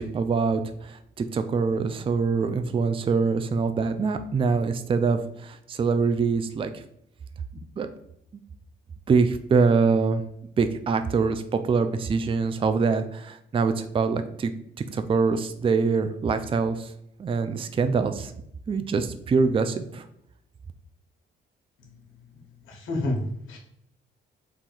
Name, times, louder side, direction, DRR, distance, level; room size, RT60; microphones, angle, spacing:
voice 1, 0.0-6.8 7.8-7.9 9.1-10.2 10.6-14.5 14.9-16.9 17.2-18.3 18.7-20.0, right 4 dB, 25° right, 9 dB, 0.4 m, -24 dB
voice 2, 22.6-23.6, left 1 dB, 80° left, 0 dB, 1.2 m, -30 dB
3.8 x 2.5 x 4.5 m, 0.74 s
cardioid pair, 90°, 20 cm